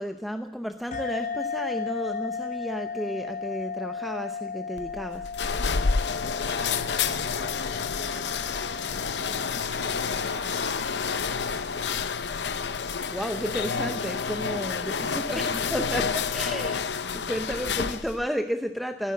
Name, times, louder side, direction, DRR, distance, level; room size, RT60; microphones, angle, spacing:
voice 1, 0.0-5.3 13.1-16.8 17.1-19.1, equal, ahead, 6 dB, 0.7 m, -32 dB
sound 1, 0.9-10.0, left 6 dB, 45° left, 0.8 m, -35 dB
sound 2, 4.8-18.3, left 5 dB, 70° left, 0.7 m, -29 dB
voice 2, 6.3-11.9 14.4-15.2, left 2 dB, 40° right, -1 dB, 7.5 m, -46 dB
16.0 x 10.0 x 8.5 m, 0.81 s
head